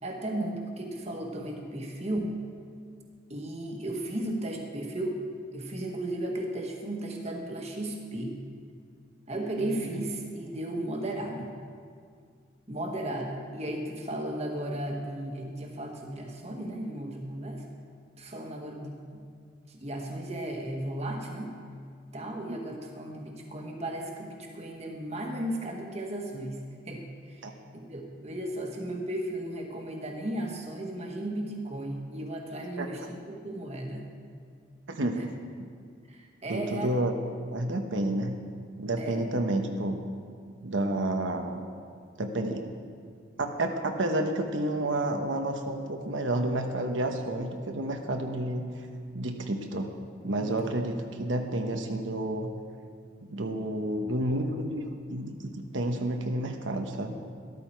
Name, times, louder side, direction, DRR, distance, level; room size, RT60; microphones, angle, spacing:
voice 1, 0.0-2.4 3.3-5.2 5.5-8.4 9.3-11.5 12.7-17.6 18.2-19.2 19.7-21.5 22.1-27.4 27.7-34.0 36.1-37.1 39.0-39.5 50.4-50.7, right 1 dB, 35° right, 2 dB, 1.5 m, -35 dB
voice 2, 9.5-9.9 22.5-22.6 27.4-27.5 32.8-32.9 34.9-35.7 36.5-37.2 37.5-38.4 38.8-40.0 40.6-41.6 42.2-42.7 43.4-48.9 49.1-49.9 50.2-52.5 53.2-57.2, right 1 dB, 85° right, 4 dB, 1.0 m, -30 dB
13.0 x 13.0 x 4.5 m, 2.1 s
head